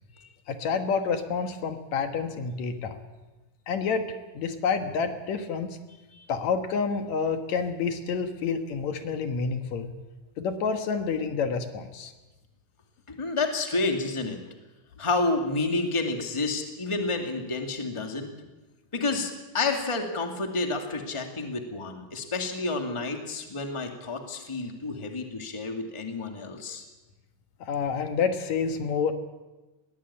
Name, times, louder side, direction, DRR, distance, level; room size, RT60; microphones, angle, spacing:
voice 1, 0.5-3.0 3.7-5.7 6.3-9.9 10.4-12.1 27.6-29.1, left 5 dB, 70° left, 7 dB, 2.6 m, -28 dB
voice 2, 13.1-14.4 15.0-18.3 18.9-26.8, left 3 dB, 10° left, 4 dB, 1.8 m, -30 dB
21.0 x 17.0 x 8.7 m, 1.1 s
omnidirectional pair, 3.3 m